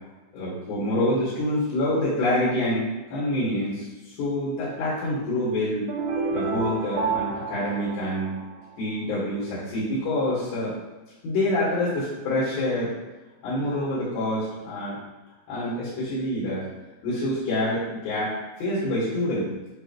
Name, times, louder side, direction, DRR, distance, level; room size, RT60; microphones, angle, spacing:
voice 1, 0.3-5.9 6.3-8.3 8.8-10.7 11.2-12.9 13.4-15.0 15.5-16.7 17.0-19.5, left 1 dB, 65° left, -8 dB, 3.6 m, -26 dB
sound 1, 5.9-8.9, right 4 dB, 85° right, 3.5 m, -29 dB
9.5 x 3.3 x 3.1 m, 1.1 s
omnidirectional pair, 5.6 m